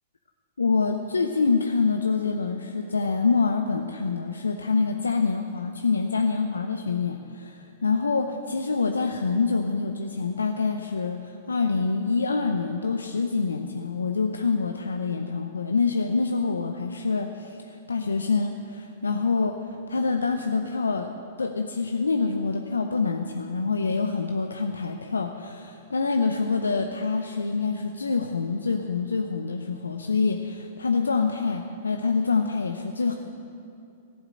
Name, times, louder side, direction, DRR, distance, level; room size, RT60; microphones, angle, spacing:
voice 1, 0.6-21.1 21.4-33.1, left 4 dB, 85° left, 5 dB, 0.6 m, -26 dB
14.0 x 8.1 x 7.6 m, 2.5 s
hypercardioid pair, 110°, 0 cm